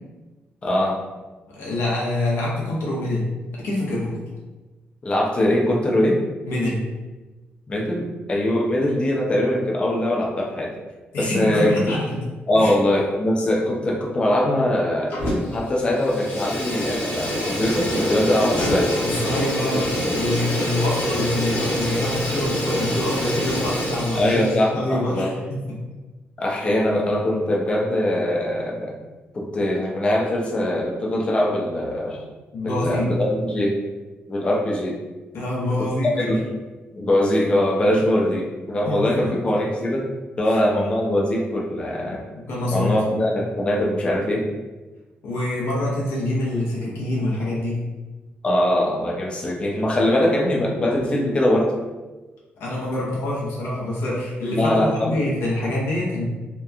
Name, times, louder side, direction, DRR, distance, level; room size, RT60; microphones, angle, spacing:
voice 1, 0.6-1.0 5.0-6.2 7.7-10.7 11.2-12.0 12.5-15.2 15.5-18.9 24.1-25.3 26.4-28.9 29.3-32.2 32.6-33.8 34.3-35.0 35.8-35.9 36.2-36.5 37.0-40.1 40.4-42.3 42.7-44.5 48.4-51.7 54.5-55.1, left 1 dB, 25° left, -1 dB, 0.4 m, -22 dB
voice 2, 1.5-3.3 3.5-4.2 6.4-6.8 11.1-12.2 12.5-12.7 19.1-25.8 32.5-33.1 35.3-36.3 38.9-39.4 40.5-40.6 42.4-42.9 45.2-47.9 52.6-56.2, left 1 dB, 90° left, -5 dB, 0.6 m, -25 dB
Fire, 15.1-15.6 15.9-24.7, equal, 65° left, 0.9 m, -26 dB
2.8 x 2.1 x 2.3 m, 1.2 s
cardioid pair, 145°, 4 cm